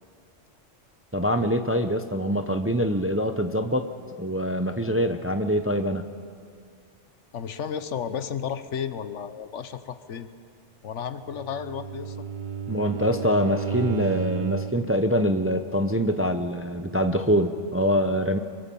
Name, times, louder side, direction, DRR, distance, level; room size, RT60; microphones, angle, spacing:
voice 1, 1.1-3.9 4.2-6.1 12.7-18.4, equal, 15° right, 8 dB, 0.6 m, -24 dB
voice 2, 7.3-10.3 10.8-12.2, left 7 dB, 75° left, 12 dB, 1.2 m, -33 dB
Bowed string instrument, 11.3-14.9, right 7 dB, 45° right, 0.8 m, -32 dB
24.0 x 23.0 x 5.4 m, 2.1 s
omnidirectional pair, 1.3 m